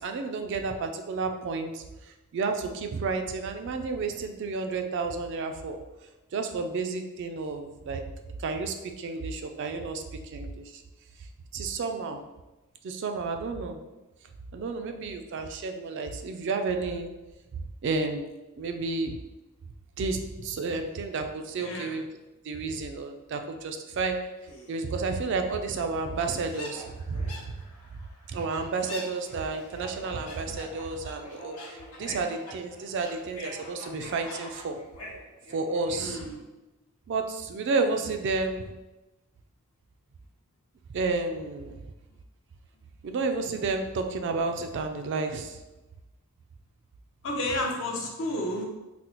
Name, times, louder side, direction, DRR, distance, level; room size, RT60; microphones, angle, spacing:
voice 1, 0.0-5.8 6.3-8.0 8.4-10.8 11.5-12.2 12.8-13.8 14.5-17.1 17.6-18.2 18.6-19.2 20.0-22.1 22.4-24.2 24.7-27.3 27.9-28.0 28.3-34.8 35.5-36.2 37.1-38.7 40.9-41.9 43.0-45.6, right 4 dB, 55° right, 6 dB, 0.3 m, -31 dB
voice 2, 21.6-22.0 36.0-36.4 47.2-48.6, left 1 dB, 60° left, 0 dB, 0.6 m, -31 dB
sound 1, 24.5-24.8 25.5-25.6 25.8-25.9 26.1-36.0, left 1 dB, 85° left, 1.0 m, -44 dB
4.0 x 2.0 x 2.9 m, 1.1 s
head